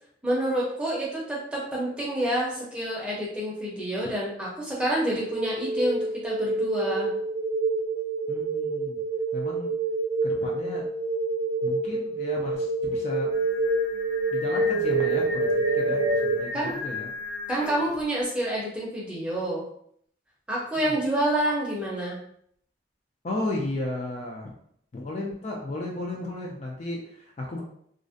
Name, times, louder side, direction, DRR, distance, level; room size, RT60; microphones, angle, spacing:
voice 1, 0.2-7.1 16.5-16.8 17.5-19.6 20.5-22.2, right 1 dB, 5° right, -6 dB, 0.6 m, -28 dB
sound 1, 5.2-16.4, right 2 dB, 70° right, 0.5 m, -27 dB
voice 2, 8.3-9.0 9.3-9.7 10.2-10.9 11.6-13.3 14.3-15.5 15.7-17.1 20.7-20.9 23.2-24.5 24.9-27.6, left 2 dB, 35° left, -1 dB, 0.3 m, -34 dB
Singing, 13.3-18.0, left 3 dB, 80° left, 0.9 m, -37 dB
2.4 x 2.0 x 2.5 m, 0.66 s
head